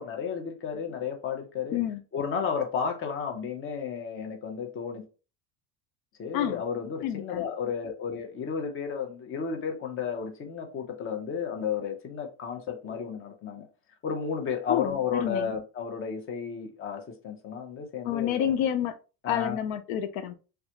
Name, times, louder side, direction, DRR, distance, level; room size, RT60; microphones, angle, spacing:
voice 1, 0.0-1.8 2.1-5.0 6.2-13.7 14.0-18.5 19.2-19.6, left 6 dB, 30° left, 0.7 m, -33 dB
voice 2, 7.0-7.4 14.7-15.5 18.1-19.0 19.3-20.3, left 10 dB, 80° left, 0.5 m, -29 dB
3.4 x 2.4 x 2.8 m
supercardioid pair, 130°, 40 cm